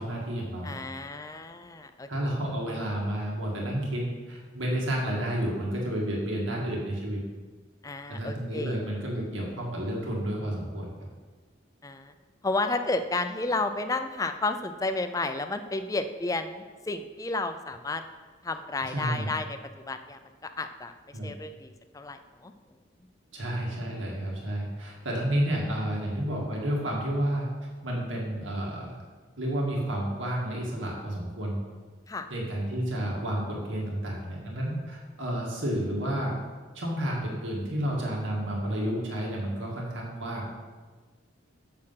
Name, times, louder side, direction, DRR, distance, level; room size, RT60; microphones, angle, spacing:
voice 1, 0.0-0.7 2.1-7.2 8.1-10.9 18.9-19.3 21.1-21.3 23.3-27.5 27.8-29.0 29.4-31.6 32.3-36.4 36.7-40.6, right 1 dB, 80° right, -3 dB, 2.0 m, -31 dB
voice 2, 0.6-2.4 7.8-8.9 11.8-12.1 12.4-18.0 18.4-19.6 19.9-20.9 21.2-22.5 32.1-32.3, left 2 dB, 15° left, 9 dB, 0.4 m, -32 dB
7.5 x 6.6 x 5.7 m, 1.4 s
head